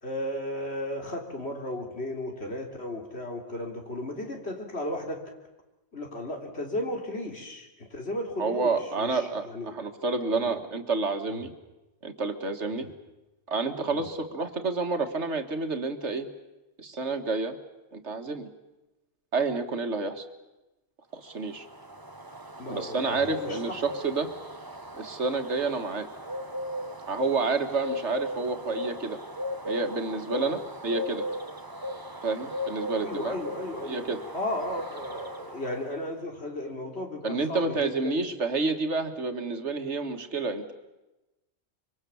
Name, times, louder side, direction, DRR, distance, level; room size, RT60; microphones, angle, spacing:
voice 1, 0.0-5.2 5.9-9.7 10.3-10.6 11.3-11.4 12.7-12.9 13.9-14.0 22.6-23.8 30.3-30.6 33.0-34.1 34.3-38.3, left 1 dB, 70° left, 2 dB, 3.7 m, -35 dB
voice 2, 8.4-11.5 12.0-12.9 13.5-16.3 16.8-17.6 17.9-18.5 19.3-20.3 21.1-21.7 22.7-24.3 24.9-26.1 27.1-29.2 29.7-31.3 32.2-33.4 33.9-34.2 37.2-40.7, right 3 dB, 85° right, 6 dB, 2.1 m, -29 dB
sound 1, 21.3-36.0, left 1 dB, 20° right, 1.3 m, -37 dB
25.5 x 24.0 x 7.1 m, 1.0 s
omnidirectional pair, 1.1 m